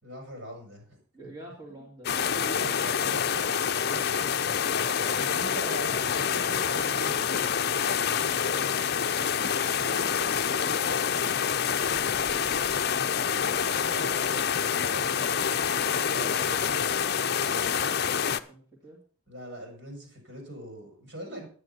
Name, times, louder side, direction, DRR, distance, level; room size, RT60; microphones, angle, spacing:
voice 1, 0.0-1.0 1.2-1.3 1.7-1.9 2.6-8.6 13.9-15.7 16.1-16.5 19.3-21.5, right 1 dB, 60° right, 1 dB, 5.9 m, -42 dB
voice 2, 1.1-3.0 9.8-12.7 13.4-14.2 16.0-17.9 18.3-19.0, right 2 dB, 20° right, -3 dB, 2.5 m, -46 dB
sound 1, 2.0-18.4, left 7 dB, 50° left, 0.5 m, -27 dB
10.5 x 10.0 x 5.5 m, 0.40 s
head